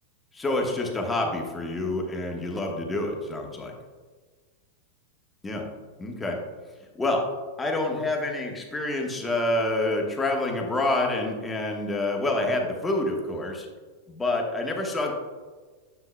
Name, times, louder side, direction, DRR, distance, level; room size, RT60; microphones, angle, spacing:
voice 1, 0.3-3.7 5.4-5.6 6.0-6.4 7.0-7.2 7.6-13.7 14.1-15.1, left 2 dB, 10° left, 1 dB, 1.2 m, -27 dB
9.5 x 6.7 x 2.2 m, 1.4 s
figure-of-eight pair, 90°, 0 cm